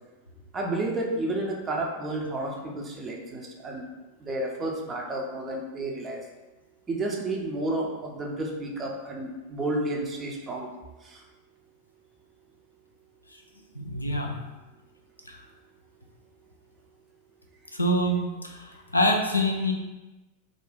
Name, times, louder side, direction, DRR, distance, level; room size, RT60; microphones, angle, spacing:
voice 1, 0.5-3.9 4.2-6.2 6.9-10.7 11.0-11.2, right 2 dB, 20° right, -1 dB, 0.5 m, -31 dB
voice 2, 13.7-14.3 15.3-15.4 17.7-19.7, equal, 85° left, 1 dB, 0.4 m, -26 dB
2.5 x 2.2 x 3.4 m, 1.1 s
figure-of-eight pair, 90°, 0 cm